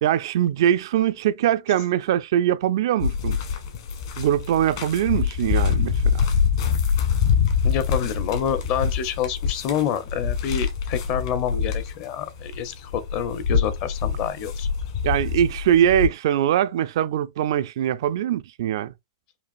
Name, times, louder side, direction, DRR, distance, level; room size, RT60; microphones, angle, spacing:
voice 1, 0.0-3.4 4.2-6.3 15.0-18.9, right 11 dB, 60° right, 0.3 m, -22 dB
sound 1, 3.0-16.1, left 6 dB, 55° left, 1.4 m, -25 dB
voice 2, 7.6-14.7, left 9 dB, 40° left, 0.6 m, -28 dB
5.2 x 2.5 x 2.4 m
hypercardioid pair, 145°, 3 cm